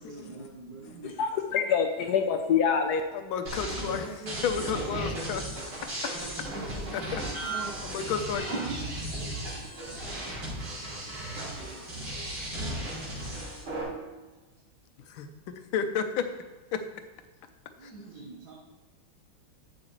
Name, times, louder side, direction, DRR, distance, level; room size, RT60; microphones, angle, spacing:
voice 1, 0.0-1.4 3.6-4.7 6.5-7.8 8.5-10.2 12.4-12.5 17.8-18.5, right 3 dB, 55° right, -6 dB, 1.8 m, -42 dB
voice 2, 0.8-3.0, left 7 dB, 70° left, 5 dB, 1.0 m, -26 dB
voice 3, 3.1-4.1 4.4-5.4 6.9-7.2 7.8-8.5 15.1-16.3 16.7-16.8 17.8-17.9, left 7 dB, 85° left, 8 dB, 1.6 m, -31 dB
sound 1, 3.5-13.8, right 1 dB, 80° right, 4.0 m, -36 dB
11.0 x 7.7 x 3.1 m, 1.2 s
omnidirectional pair, 2.2 m